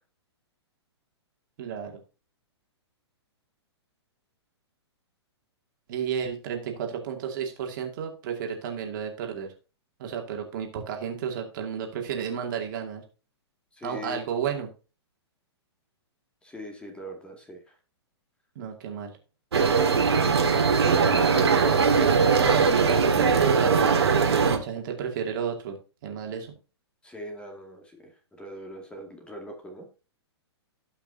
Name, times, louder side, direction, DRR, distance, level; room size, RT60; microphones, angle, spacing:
voice 1, 1.6-1.9 5.9-9.5 10.0-13.0 13.8-14.7 18.6-19.2 22.3-25.8 26.0-26.5, right 7 dB, 45° right, 2 dB, 2.4 m, -32 dB
voice 2, 13.8-14.2 16.4-17.7 20.8-21.8 27.0-28.1 28.4-29.9, equal, 5° left, 3 dB, 2.2 m, -40 dB
sound 1, 19.5-24.6, right 5 dB, 65° right, 2.0 m, -21 dB
17.5 x 5.8 x 2.7 m, 0.33 s
figure-of-eight pair, 115°, 14 cm